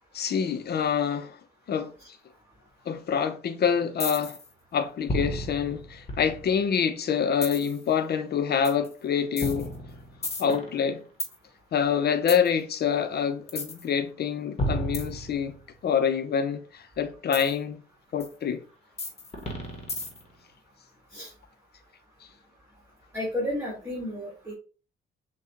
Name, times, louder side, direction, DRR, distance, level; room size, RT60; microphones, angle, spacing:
voice 1, 0.1-1.4 1.7-1.9 2.9-4.4 4.7-9.7 10.4-11.0 11.7-15.6 15.8-17.8 18.1-18.6, left 7 dB, 55° left, 0.7 m, -26 dB
sound 1, 4.0-4.5 5.1-6.7 7.4-7.8 8.6-8.9 9.4-11.3 12.3-12.5 13.5-13.8 14.6-15.7 17.3-17.5 18.2-18.3 19.0-20.4, equal, 30° left, 1.2 m, -32 dB
voice 2, 23.1-24.5, left 1 dB, 10° right, 1.7 m, -32 dB
6.1 x 2.4 x 2.9 m
cardioid pair, 90°, 20 cm